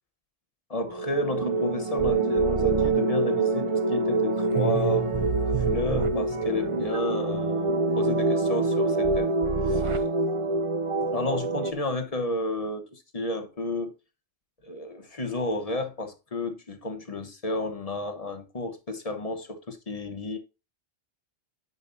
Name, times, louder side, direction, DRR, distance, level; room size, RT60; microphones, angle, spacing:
voice 1, 0.7-5.1 5.6-9.3 9.6-10.0 11.1-13.9 14.6-20.4, left 2 dB, 35° left, 1.1 m, -31 dB
sound 1, 0.9-11.7, right 3 dB, 35° right, 0.6 m, -25 dB
10.5 x 5.3 x 2.7 m
omnidirectional pair, 1.2 m